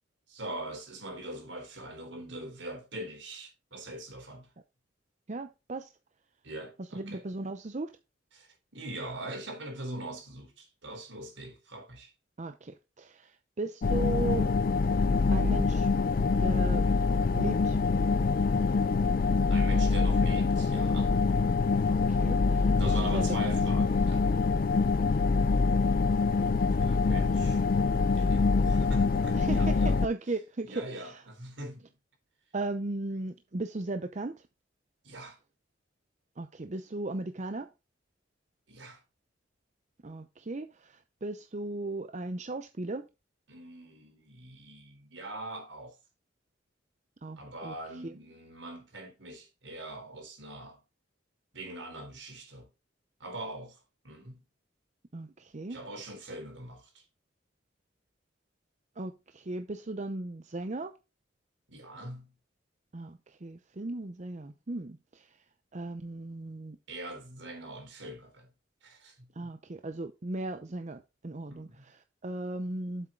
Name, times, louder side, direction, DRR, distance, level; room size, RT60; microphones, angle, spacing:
voice 1, 0.3-4.5 6.4-7.2 8.3-12.1 19.5-21.3 22.7-24.3 26.8-27.6 28.1-30.0 30.6-31.9 35.0-35.4 38.7-39.0 43.5-46.0 47.4-50.8 51.5-52.7 53.2-54.4 55.7-57.0 61.7-62.3 66.9-68.5 68.8-69.6 71.5-71.9, right 1 dB, 75° right, 3.8 m, -42 dB
voice 2, 5.3-5.9 6.9-7.9 12.4-14.5 15.3-15.9 16.4-16.9 17.3-17.8 21.9-23.5 29.3-31.2 32.5-34.4 36.4-37.7 40.0-43.1 47.2-47.7 48.0-48.1 55.1-55.8 59.0-60.9 62.9-65.3 65.7-66.8 69.4-73.1, right 2 dB, 40° right, 0.7 m, -37 dB
sound 1, 13.8-30.1, left 4 dB, 50° left, 0.4 m, -25 dB
7.9 x 7.8 x 3.8 m
head